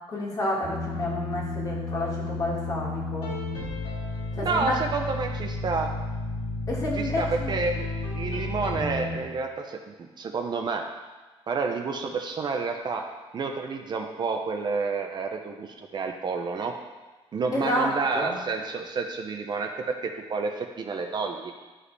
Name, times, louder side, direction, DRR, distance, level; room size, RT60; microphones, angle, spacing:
voice 1, 0.1-3.3 4.4-4.7 6.7-7.5 17.5-17.9 18.1-18.4, left 1 dB, 35° left, -3 dB, 1.9 m, -29 dB
sound 1, 0.6-9.2, left 2 dB, 90° left, 2.2 m, -32 dB
voice 2, 4.3-5.9 7.0-10.8 11.5-13.1 13.3-16.7 17.3-21.5, right 4 dB, 40° right, 4 dB, 0.6 m, -30 dB
11.0 x 5.0 x 3.3 m, 1.2 s
cardioid pair, 135°, 11 cm